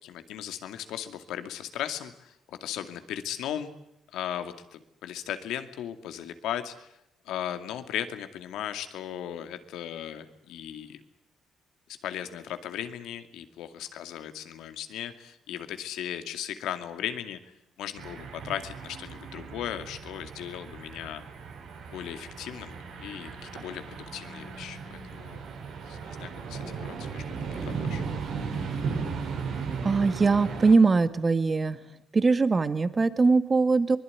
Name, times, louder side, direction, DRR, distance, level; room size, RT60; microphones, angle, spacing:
voice 1, 0.0-3.7 4.1-7.0 7.2-11.0 12.0-21.2 21.9-28.0, left 10 dB, 90° left, 8 dB, 2.3 m, -37 dB
sound 1, 18.0-30.7, right 5 dB, 80° right, 7.4 m, -36 dB
voice 2, 29.8-31.8 32.1-34.0, right 4 dB, 30° right, 11 dB, 1.8 m, -22 dB
24.0 x 21.5 x 9.6 m, 0.79 s
cardioid pair, 90°, 0 cm